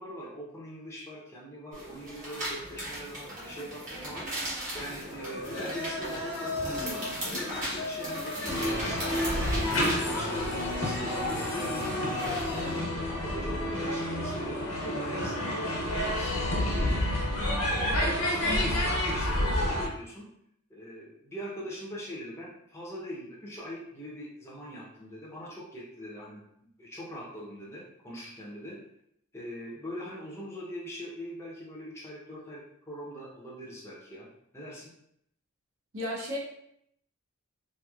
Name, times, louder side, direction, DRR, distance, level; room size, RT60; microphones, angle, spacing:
voice 1, 0.0-4.5 4.7-9.4 9.8-12.4 13.0-15.6 15.9-17.1 17.6-20.3 20.7-28.8 29.3-34.9, equal, 10° left, -5 dB, 0.6 m, -42 dB
sound 1, 1.7-12.7, right 1 dB, 35° right, 1.2 m, -38 dB
sound 2, 5.0-12.9, left 2 dB, 50° left, 0.7 m, -36 dB
sound 3, 8.5-19.9, left 1 dB, 85° left, 0.8 m, -29 dB
voice 2, 18.4-18.8 35.9-36.4, left 1 dB, 60° right, -5 dB, 0.8 m, -34 dB
3.0 x 2.6 x 2.3 m, 0.74 s
head